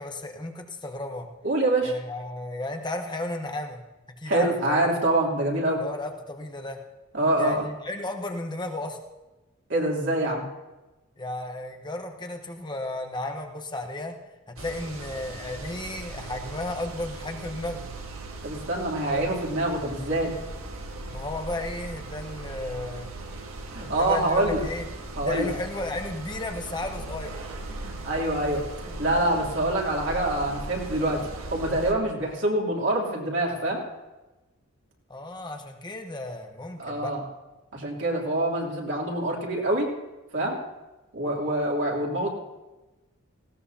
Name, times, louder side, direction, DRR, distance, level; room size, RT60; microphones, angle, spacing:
voice 1, 0.0-1.3 1.8-3.8 4.2-4.8 5.8-6.8 7.4-9.0 11.2-14.1 14.5-17.9 19.1-19.3 21.1-23.1 23.8-24.9 25.2-27.3 35.1-37.2, left 2 dB, 20° left, 4 dB, 1.0 m, -34 dB
voice 2, 1.4-1.9 4.3-5.8 7.1-7.7 9.7-10.5 18.4-20.3 23.7-24.6 25.2-25.5 27.8-33.8 36.8-37.2 37.7-39.9 40.3-40.6 41.1-42.3, right 1 dB, 60° right, -2 dB, 3.0 m, -25 dB
sound 1, 14.6-31.9, right 2 dB, 90° right, 1.7 m, -38 dB
18.5 x 16.5 x 2.8 m, 1.1 s
head